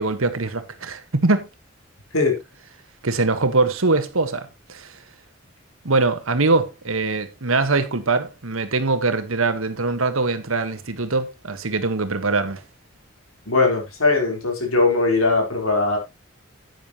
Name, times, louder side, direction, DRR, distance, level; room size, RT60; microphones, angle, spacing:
voice 1, 0.0-1.5 3.0-4.9 5.8-12.6, right 3 dB, 85° right, 1.4 m, -22 dB
voice 2, 13.5-16.0, left 3 dB, 85° left, 4.3 m, -20 dB
10.5 x 9.3 x 3.0 m
head